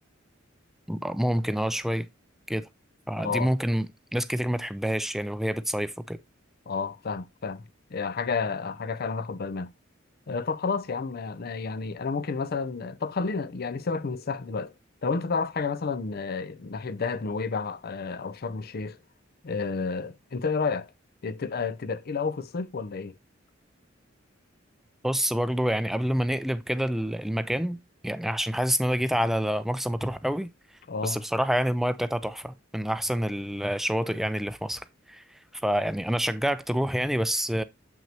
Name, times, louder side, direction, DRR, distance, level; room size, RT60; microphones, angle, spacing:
voice 1, 0.9-2.1 2.5-2.7 3.1-6.2 25.0-27.8 28.0-30.5 31.0-35.2 35.6-37.6, equal, ahead, 0.4 m, -27 dB
voice 2, 3.2-3.5 6.7-9.7 10.3-14.7 15.0-19.0 19.4-20.9 21.2-23.2 30.9-31.2, left 4 dB, 50° left, 0.5 m, -31 dB
7.4 x 6.2 x 2.8 m
head